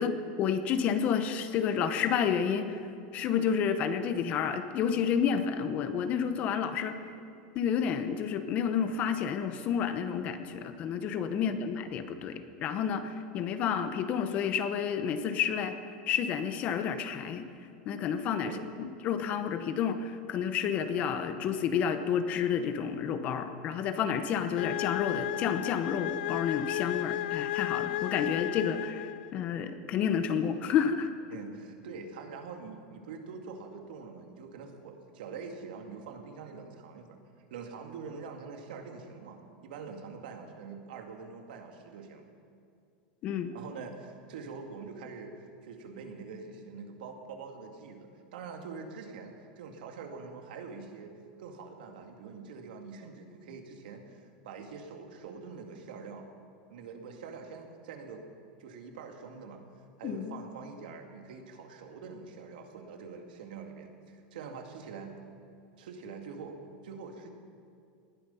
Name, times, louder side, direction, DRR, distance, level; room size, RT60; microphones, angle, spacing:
voice 1, 0.0-2.8 3.1-7.0 7.5-15.7 16.1-17.5 17.9-18.5 18.8-31.1 43.2-43.5 60.0-60.4, left 7 dB, 30° left, 9 dB, 0.9 m, -30 dB
voice 2, 11.4-11.7 18.4-18.7 31.3-37.2 37.5-42.2 43.5-51.1 51.4-56.3 56.7-58.3 58.6-59.6 60.0-65.1 65.8-67.3, right 5 dB, 85° right, 3 dB, 2.2 m, -44 dB
sound 1, 24.6-29.4, left 15 dB, 90° left, 0.5 m, -33 dB
19.5 x 12.0 x 5.6 m, 2.5 s
supercardioid pair, 170°, 5 cm